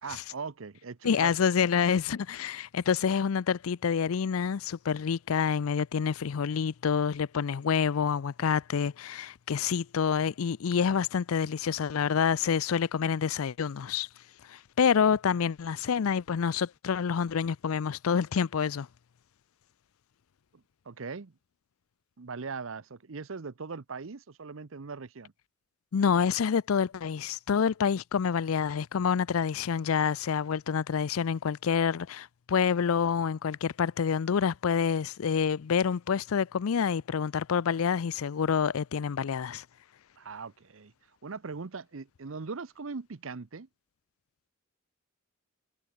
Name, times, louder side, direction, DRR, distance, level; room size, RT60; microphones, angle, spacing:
voice 1, 0.0-1.3 20.5-21.3 22.2-25.3 40.2-40.9 41.2-43.7, right 4 dB, 70° right, 0.8 m, -40 dB
voice 2, 1.0-14.1 14.5-18.9 25.9-39.6, left 7 dB, 85° left, 0.5 m, -27 dB
head